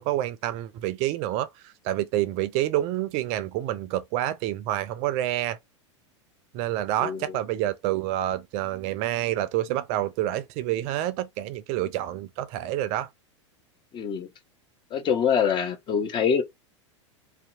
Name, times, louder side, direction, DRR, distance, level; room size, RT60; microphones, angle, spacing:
voice 1, 0.0-5.6 6.5-13.1, right 13 dB, 45° right, 0.4 m, -28 dB
voice 2, 7.0-7.4 13.9-14.3 14.9-16.4, left 7 dB, 30° left, 0.6 m, -25 dB
2.7 x 2.1 x 2.5 m
hypercardioid pair, 90°, 16 cm